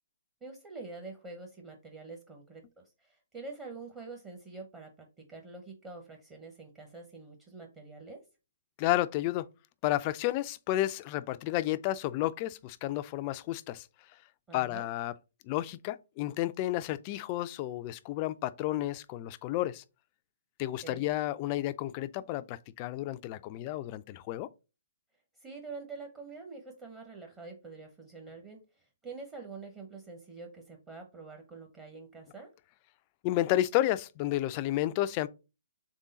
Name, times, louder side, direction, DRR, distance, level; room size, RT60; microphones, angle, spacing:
voice 1, 0.4-8.2 14.5-14.9 20.8-21.1 25.4-32.5, right 3 dB, 20° right, 0.8 m, -46 dB
voice 2, 8.8-9.5 9.8-13.9 14.5-15.1 15.5-19.8 20.6-24.5 33.2-35.3, left 15 dB, 35° left, 0.3 m, -31 dB
3.7 x 3.6 x 4.0 m
figure-of-eight pair, 135°, 0 cm